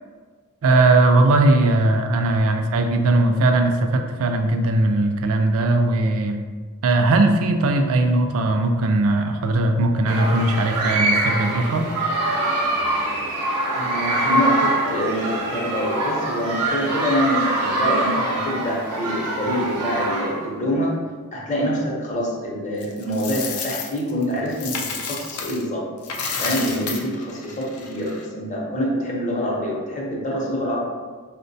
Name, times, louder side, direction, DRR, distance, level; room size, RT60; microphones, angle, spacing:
voice 1, 0.6-6.4 6.8-11.8, right 2 dB, 65° right, 5 dB, 0.4 m, -19 dB
sound 1, 10.1-20.6, right 2 dB, 85° right, 0.7 m, -24 dB
voice 2, 13.7-21.0 21.3-25.8 26.4-30.8, equal, 35° left, -3 dB, 0.7 m, -25 dB
Coin (dropping), 22.8-25.6 26.0-28.2, left 5 dB, 70° left, 0.4 m, -31 dB
4.4 x 2.1 x 2.6 m, 1.5 s
head